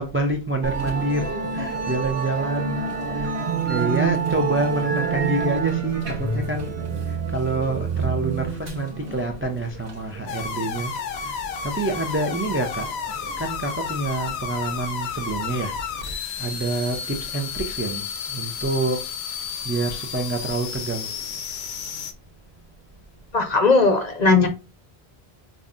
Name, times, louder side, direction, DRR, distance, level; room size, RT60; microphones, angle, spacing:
voice 1, 0.0-3.4 3.7-12.9 13.4-15.8 16.4-19.1 19.6-21.1, right 2 dB, 20° right, 0.3 m, -27 dB
Musical instrument, 0.6-16.1, right 5 dB, 65° right, 1.3 m, -29 dB
sound 1, 10.3-22.1, left 6 dB, 80° left, 0.9 m, -32 dB
voice 2, 23.3-24.5, left 4 dB, 45° left, 0.7 m, -17 dB
5.3 x 2.4 x 2.5 m
omnidirectional pair, 1.1 m